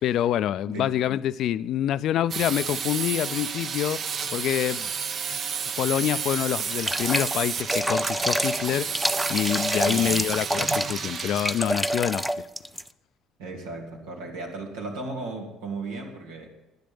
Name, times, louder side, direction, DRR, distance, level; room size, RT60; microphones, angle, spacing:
voice 1, 0.0-4.1 4.3-4.9 5.8-12.3, left 11 dB, 65° left, 0.4 m, -26 dB
sound 1, 2.3-11.7, right 6 dB, 50° right, 0.8 m, -31 dB
sound 2, 6.3-12.9, equal, 5° right, 0.5 m, -28 dB
voice 2, 9.8-10.3 13.4-16.5, right 3 dB, 90° right, 2.7 m, -35 dB
10.5 x 10.0 x 7.0 m
supercardioid pair, 70°, 0 cm